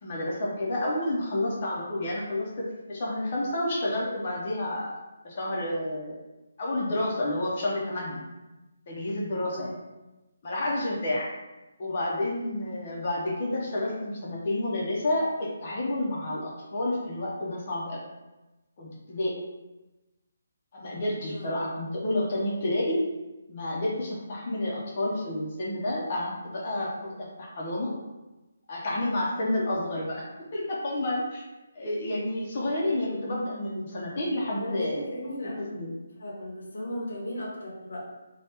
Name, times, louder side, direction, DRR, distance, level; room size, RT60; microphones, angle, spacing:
voice 1, 0.0-5.0 5.2-6.2 6.6-8.2 8.9-9.7 10.4-11.3 11.8-18.0 18.8-19.3 20.7-23.0 23.5-27.9 28.7-30.2 30.5-31.4 31.7-35.2 35.8-35.9, left 1 dB, 35° left, -3 dB, 0.7 m, -30 dB
voice 2, 34.6-35.9 36.2-38.0, left 1 dB, 80° left, -3 dB, 1.0 m, -36 dB
2.9 x 2.2 x 3.4 m, 1.1 s
hypercardioid pair, 170°, 0 cm